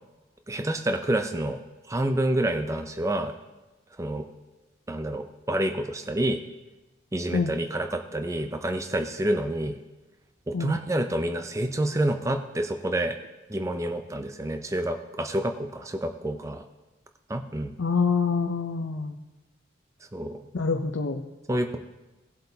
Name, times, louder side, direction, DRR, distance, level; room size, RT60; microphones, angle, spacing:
voice 1, 0.5-1.6 1.9-3.3 4.0-4.3 4.9-6.4 7.1-9.8 10.5-13.2 13.5-16.6 17.3-17.7 20.1-20.4 21.5-21.8, right 1 dB, 15° right, 6 dB, 0.5 m, -28 dB
voice 2, 17.8-19.1 20.5-21.2, left 5 dB, 75° left, 4 dB, 0.6 m, -26 dB
18.0 x 7.8 x 2.8 m, 1.1 s
head